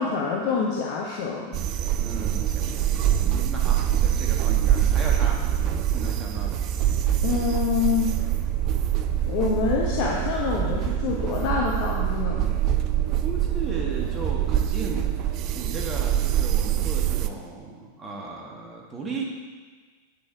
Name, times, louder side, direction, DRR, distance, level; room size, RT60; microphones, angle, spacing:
voice 1, 0.0-1.6 7.2-8.2 9.3-12.5, left 5 dB, 45° left, -2 dB, 1.0 m, -26 dB
sound 1, 1.5-17.3, right 11 dB, 40° right, 0.5 m, -24 dB
voice 2, 2.0-2.8 3.2-5.4 5.9-6.6 13.2-19.2, right 3 dB, 20° right, -2 dB, 1.6 m, -36 dB
8.8 x 7.0 x 4.7 m, 1.5 s
figure-of-eight pair, 90°, 0 cm